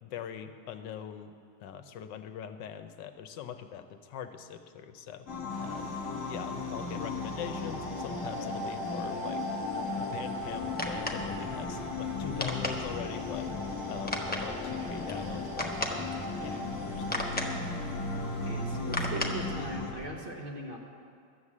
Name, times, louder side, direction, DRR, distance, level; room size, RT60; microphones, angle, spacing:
voice 1, 0.0-1.3 1.6-5.3 5.6-6.0 6.3-9.4 9.8-13.5 13.9-17.6, left 8 dB, 80° left, 8 dB, 1.4 m, -42 dB
sound 1, 5.3-19.9, left 3 dB, 45° left, 1.9 m, -36 dB
sound 2, 5.5-19.2, right 3 dB, 70° right, 1.7 m, -53 dB
sound 3, 10.4-20.1, left 1 dB, 10° left, 0.6 m, -38 dB
voice 2, 18.4-20.8, right 1 dB, 35° right, -1 dB, 1.0 m, -39 dB
12.5 x 8.1 x 7.3 m, 2.3 s
omnidirectional pair, 1.9 m